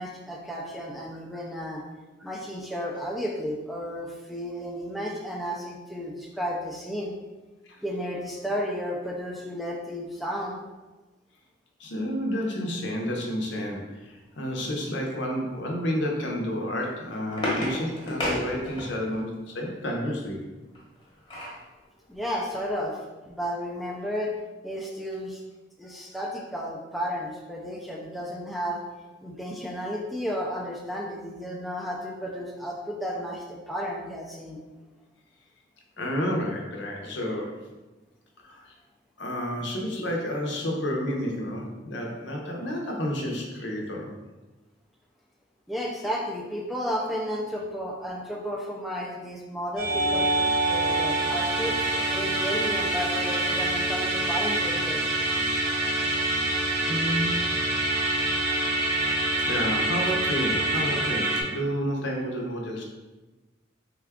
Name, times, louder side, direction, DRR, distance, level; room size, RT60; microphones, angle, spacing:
voice 1, 0.0-1.8 2.2-7.1 7.8-10.6 22.1-24.4 24.6-25.4 25.8-28.8 29.2-34.6 45.7-50.3 50.7-55.0, equal, ahead, -2 dB, 0.4 m, -33 dB
voice 2, 11.8-20.4 36.0-37.6 38.4-38.7 39.2-44.1 56.9-57.4 59.5-62.8, equal, 65° left, 0 dB, 0.7 m, -30 dB
sound 1, 16.7-19.2 20.7-21.6 22.1-22.2 22.5-22.7, left 1 dB, 25° left, 0.9 m, -31 dB
Musical instrument, 49.8-61.4, right 2 dB, 60° right, 0.8 m, -26 dB
3.6 x 2.3 x 3.5 m, 1.2 s
head